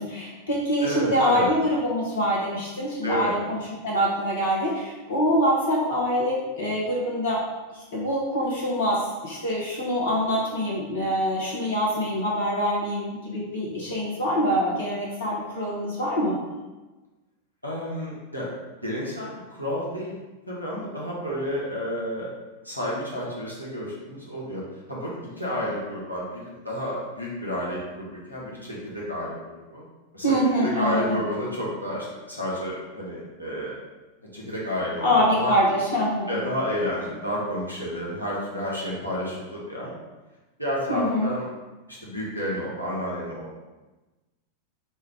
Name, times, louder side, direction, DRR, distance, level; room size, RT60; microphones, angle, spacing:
voice 1, 0.0-7.4 7.7-16.4 30.2-31.2 35.0-36.3 40.9-41.3, equal, 65° left, -4 dB, 0.8 m, -25 dB
voice 2, 0.8-1.5 3.0-3.3 17.6-18.5 18.8-20.2 20.5-22.3 22.6-24.6 24.9-29.8 30.1-33.7 34.2-35.5 36.3-39.9 40.6-41.4 41.9-43.6, equal, 90° left, -6 dB, 0.9 m, -31 dB
4.2 x 2.3 x 3.5 m, 1.1 s
figure-of-eight pair, 90°, 0 cm